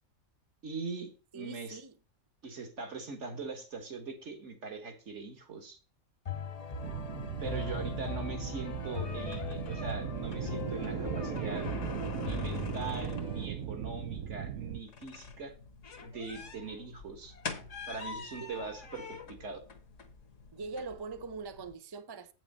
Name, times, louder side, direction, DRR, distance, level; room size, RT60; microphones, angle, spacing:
voice 1, 0.6-1.8 2.4-5.8 7.4-11.7 12.1-15.5 16.0-17.3 17.9-19.6, right 4 dB, 60° right, 1.8 m, -41 dB
voice 2, 1.3-1.9 7.2-7.9 16.4-16.5 16.8-16.9 18.4-18.6 20.5-22.3, right 4 dB, 35° right, 0.4 m, -43 dB
sound 1, 6.3-13.5, left 5 dB, 35° left, 0.6 m, -39 dB
sound 2, 6.8-14.8, right 10 dB, 80° right, 1.1 m, -38 dB
sound 3, 7.9-21.7, left 4 dB, 65° left, 1.5 m, -47 dB
8.4 x 6.0 x 5.5 m
omnidirectional pair, 1.4 m